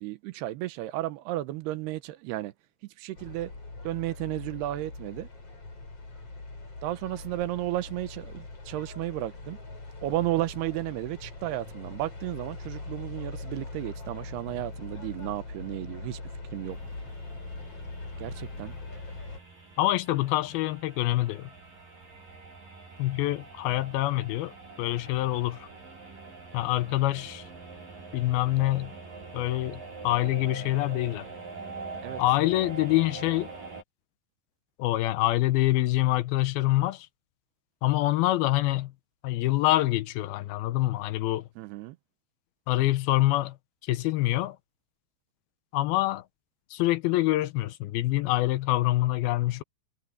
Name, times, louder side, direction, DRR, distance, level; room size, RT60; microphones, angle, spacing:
voice 1, 0.0-2.5 2.8-3.5 3.8-5.3 6.8-9.6 10.0-16.2 16.5-16.8 18.2-18.8 32.0-32.2 41.6-42.0, right 15 dB, 85° right, 2.9 m, -33 dB
sound 1, 3.1-19.4, left 3 dB, 35° left, 7.2 m, -41 dB
sound 2, 16.6-33.8, right 4 dB, 55° right, 8.4 m, -44 dB
voice 2, 19.8-21.5 23.0-25.7 26.5-27.5 28.1-28.9 29.3-31.3 32.2-33.5 34.8-37.1 37.8-38.9 39.2-41.5 42.7-43.6 43.8-44.6 45.7-46.3 46.7-49.6, left 16 dB, 80° left, 2.4 m, -26 dB
omnidirectional pair, 4.7 m